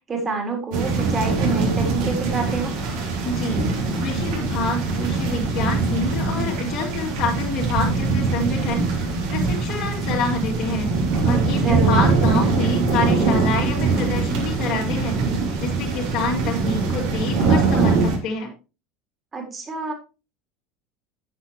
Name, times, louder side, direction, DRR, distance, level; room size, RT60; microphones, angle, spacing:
voice 1, 0.1-2.7 11.5-12.0 19.3-19.9, right 4 dB, 25° right, 2 dB, 3.8 m, -27 dB
sound 1, 0.7-18.2, right 4 dB, 55° right, 3.5 m, -22 dB
voice 2, 3.2-3.6 4.0-15.2 15.6-18.5, left 3 dB, 55° left, -7 dB, 3.8 m, -27 dB
10.0 x 9.7 x 3.2 m, 0.31 s
figure-of-eight pair, 75°, 0 cm